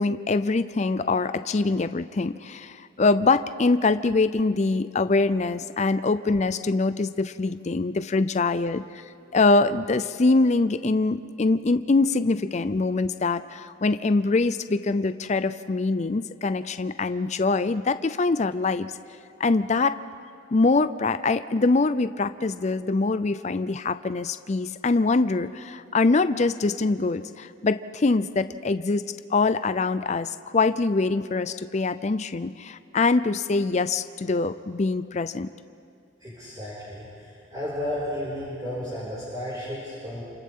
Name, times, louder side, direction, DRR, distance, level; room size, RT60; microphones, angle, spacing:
voice 1, 0.0-8.8 9.3-18.9 19.4-20.0 20.5-35.5, left 3 dB, 35° left, 12 dB, 0.5 m, -24 dB
voice 2, 36.2-40.2, left 1 dB, 20° right, -9 dB, 5.9 m, -33 dB
29.0 x 28.0 x 3.7 m, 2.4 s
head